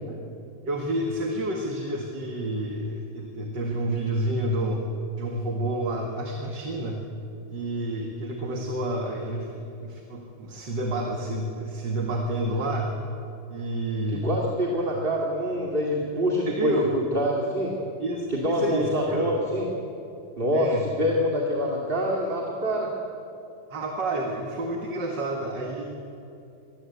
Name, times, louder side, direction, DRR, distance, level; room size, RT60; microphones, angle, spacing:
voice 1, 0.7-4.8 5.2-7.0 7.5-13.0 13.5-14.3 16.5-16.9 18.0-19.3 20.5-20.9 23.7-25.9, right 1 dB, 85° right, 2 dB, 2.5 m, -29 dB
voice 2, 14.1-17.8 18.3-19.7 20.4-22.9, equal, 30° right, -1 dB, 2.6 m, -26 dB
25.0 x 21.0 x 8.1 m, 2.7 s
omnidirectional pair, 1.9 m